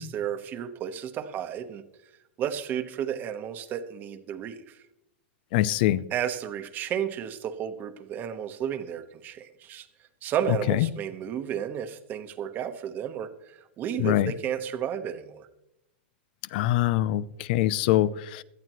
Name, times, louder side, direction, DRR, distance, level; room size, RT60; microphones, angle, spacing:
voice 1, 0.0-1.8 2.4-4.8 6.1-9.9 10.2-15.5, right 9 dB, 30° right, 9 dB, 1.1 m, -32 dB
voice 2, 5.5-6.1 10.7-10.9 14.0-14.3 16.5-18.4, left 14 dB, 55° left, 19 dB, 0.5 m, -24 dB
18.0 x 12.5 x 3.1 m, 0.88 s
supercardioid pair, 140°, 6 cm